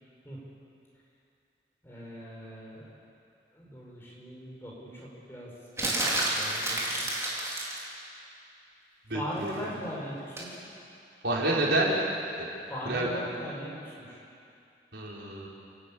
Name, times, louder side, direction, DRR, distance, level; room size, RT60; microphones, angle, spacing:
voice 1, 1.8-2.9 3.5-5.5 5.8-7.1 9.1-10.6 12.7-14.2, equal, 15° left, -4 dB, 5.5 m, -40 dB
sound 1, 5.8-7.9 10.4-10.6, right 1 dB, 15° right, 3.8 m, -29 dB
voice 2, 9.1-9.6 11.2-11.9 12.4-12.5 12.8-13.1 14.9-15.5, right 1 dB, 85° right, -4 dB, 4.7 m, -28 dB
30.0 x 13.5 x 8.8 m, 2.6 s
head